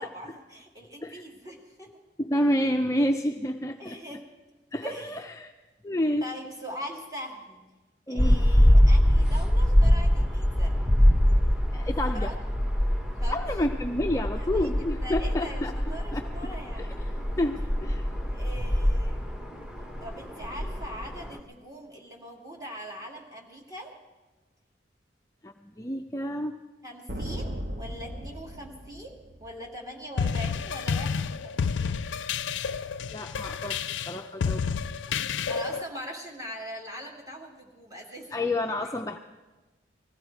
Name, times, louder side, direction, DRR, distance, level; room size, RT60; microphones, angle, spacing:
voice 1, 0.0-1.9 3.8-4.3 4.8-5.2 6.2-7.6 8.1-10.8 12.1-12.3 13.2-13.4 14.4-14.7 15.0-16.9 18.3-19.4 20.0-23.9 26.8-32.0 35.5-38.4, equal, 20° right, -2 dB, 2.3 m, -41 dB
voice 2, 2.2-4.2 4.7-5.5 5.8-6.3 8.1-8.5 11.7-12.3 13.3-15.7 16.1-16.5 16.8-18.1 25.4-26.6 33.1-35.0 38.3-39.2, left 1 dB, 15° left, 4 dB, 0.4 m, -29 dB
sound 1, 8.2-21.4, equal, 5° right, 1.0 m, -24 dB
sound 2, 27.1-29.8, right 1 dB, 50° right, 1.0 m, -36 dB
sound 3, 30.2-35.8, left 6 dB, 85° left, 0.4 m, -30 dB
19.5 x 15.0 x 4.6 m, 1.2 s
head